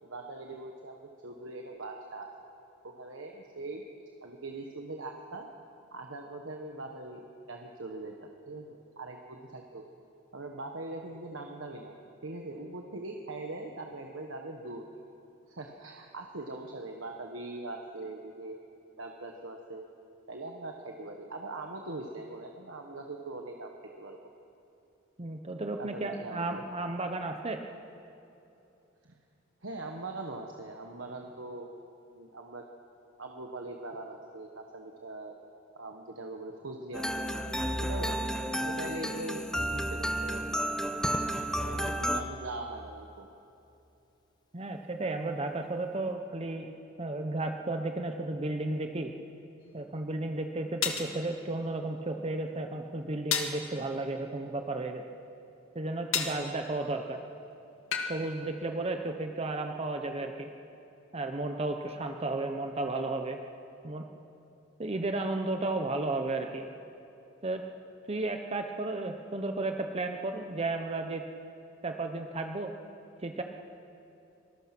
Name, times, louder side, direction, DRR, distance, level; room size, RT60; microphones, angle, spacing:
voice 1, 0.0-2.3 2.8-3.8 4.2-5.5 5.9-9.8 10.3-14.8 15.5-18.6 18.9-19.9 20.3-23.7 24.0-24.2 25.8-26.6 29.0-29.1 29.6-31.7 32.1-32.6 33.2-35.4 35.7-37.4 37.8-38.3 38.6-40.6 41.6-43.3, right 2 dB, 70° right, 2 dB, 1.4 m, -41 dB
voice 2, 25.2-27.6 44.5-46.7 47.0-49.1 49.7-55.0 55.7-57.2 58.1-60.5 61.1-63.4 63.8-64.0 64.8-66.7 67.4-67.6 68.1-71.2 71.8-72.7 73.2-73.4, right 2 dB, 30° right, 5 dB, 0.9 m, -33 dB
sound 1, 36.9-42.2, equal, 5° left, 0.8 m, -32 dB
Crackle, 40.9-42.1 43.7-44.2, left 1 dB, 20° left, 1.3 m, -41 dB
sound 2, 49.7-49.8 50.8-51.1 53.3-53.6 56.1-56.4 57.9-58.1, left 7 dB, 70° left, 2.0 m, -30 dB
25.0 x 20.5 x 6.1 m, 2.8 s
head